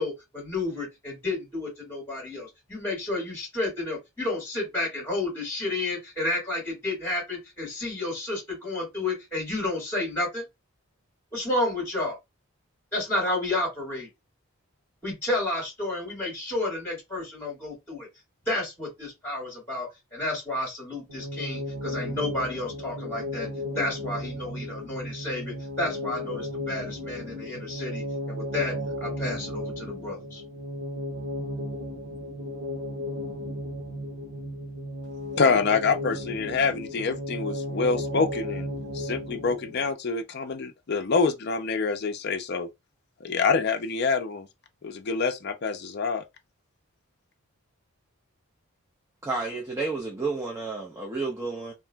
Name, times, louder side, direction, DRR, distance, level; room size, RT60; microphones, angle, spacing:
voice 1, 0.0-10.5 11.3-12.2 12.9-14.1 15.0-18.1 18.5-23.5 23.8-28.7 29.0-30.4, left 2 dB, 10° left, 1.8 m, -31 dB
sound 1, 21.1-39.9, left 1 dB, 90° right, 0.9 m, -34 dB
voice 2, 35.4-38.7 38.9-42.7 43.2-44.5 44.8-46.2, left 5 dB, 50° left, 0.4 m, -26 dB
voice 3, 49.2-51.7, right 3 dB, 15° right, 0.6 m, -31 dB
2.9 x 2.5 x 2.2 m
head